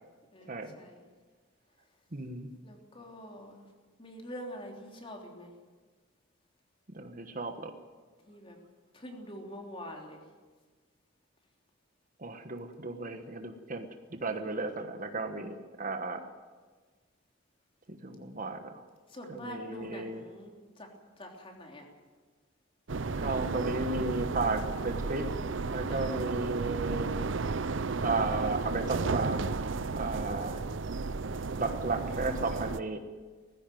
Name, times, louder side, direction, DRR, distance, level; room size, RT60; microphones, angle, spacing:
voice 1, 0.3-1.1 2.6-3.6 4.0-5.5 8.3-8.6 8.9-10.3 19.1-21.9 25.9-26.3, equal, 30° left, 1 dB, 3.3 m, -45 dB
voice 2, 2.1-2.5 6.9-7.7 12.2-16.3 17.9-18.8 19.3-20.2 23.2-25.3 25.7-27.1 28.0-29.5 30.0-30.6 31.6-33.0, right 3 dB, 45° right, 7 dB, 1.3 m, -34 dB
sound 1, 22.9-32.8, right 4 dB, 70° right, 0.7 m, -33 dB
19.0 x 15.5 x 9.3 m, 1.4 s
head